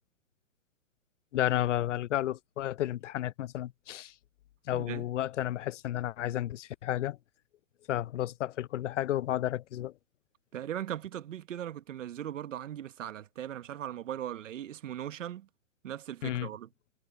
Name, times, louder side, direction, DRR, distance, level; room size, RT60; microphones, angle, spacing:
voice 1, 1.3-4.1 4.7-7.2 7.9-9.9 16.2-16.5, left 13 dB, 65° left, 0.7 m, -32 dB
voice 2, 4.7-5.0 10.5-15.5 15.8-16.7, right 11 dB, 70° right, 1.4 m, -39 dB
hypercardioid pair, 135°, 40 cm